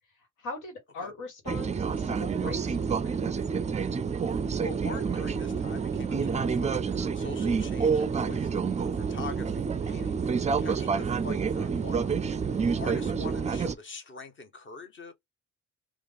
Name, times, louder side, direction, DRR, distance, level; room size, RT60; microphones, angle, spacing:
voice 1, 0.4-3.2, left 3 dB, 80° left, 1.6 m, -41 dB
sound 1, 1.5-13.7, right 5 dB, 25° right, 0.4 m, -28 dB
voice 2, 4.5-15.1, left 4 dB, 40° left, 1.2 m, -44 dB
3.4 x 2.4 x 3.4 m
cardioid pair, 90°, 30 cm